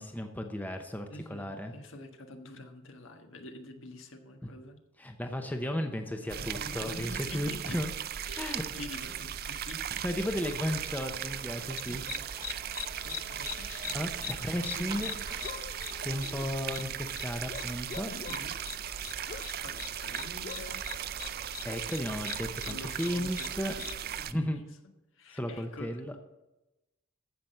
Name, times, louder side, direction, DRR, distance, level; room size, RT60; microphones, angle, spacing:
voice 1, 0.0-1.7 5.0-7.9 8.4-8.6 10.0-12.0 13.9-15.1 16.0-18.1 21.6-23.7 24.3-24.6 25.3-26.1, equal, 10° left, 5 dB, 0.7 m, -34 dB
voice 2, 1.1-4.8 6.3-7.8 8.3-10.0 11.9-12.2 13.0-14.1 14.8-15.3 18.0-18.5 19.6-20.8 22.3-24.6 25.1-26.2, left 1 dB, 65° left, 5 dB, 1.5 m, -47 dB
sound 1, 6.3-24.3, right 9 dB, 45° right, 0.4 m, -38 dB
sound 2, 10.2-15.5, right 2 dB, 20° right, 1.1 m, -52 dB
sound 3, 11.8-24.0, left 10 dB, 40° left, 0.3 m, -44 dB
15.0 x 5.9 x 6.7 m, 1.0 s
head